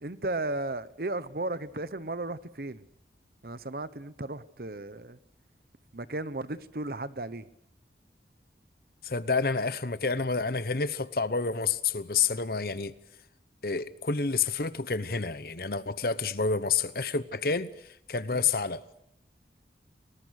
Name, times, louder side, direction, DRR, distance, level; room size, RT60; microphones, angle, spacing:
voice 1, 0.0-2.8 3.4-5.2 5.9-7.5 18.3-18.5, right 2 dB, 55° right, 1.0 m, -35 dB
voice 2, 9.0-12.9 13.6-17.7 18.1-18.8, left 5 dB, 55° left, 1.0 m, -29 dB
29.0 x 20.0 x 6.6 m
head